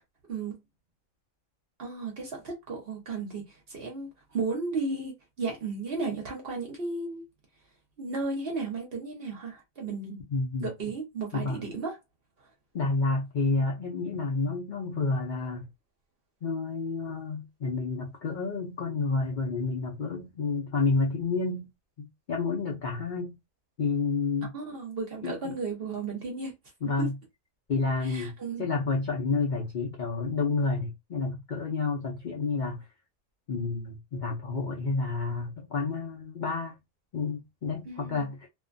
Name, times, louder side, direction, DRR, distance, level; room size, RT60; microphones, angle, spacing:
voice 1, 1.8-7.2 8.0-10.2 10.6-12.0 24.5-26.5 27.0-27.1 28.0-28.7 37.9-38.3, right 3 dB, 50° right, 0.8 m, -34 dB
voice 2, 10.3-10.7 11.3-11.6 12.7-15.7 16.4-21.7 22.0-23.4 23.8-24.5 25.2-25.6 26.8-27.1 27.7-32.9 33.5-36.7 37.1-38.5, left 3 dB, 75° left, 0.4 m, -30 dB
2.5 x 2.2 x 2.4 m
omnidirectional pair, 1.5 m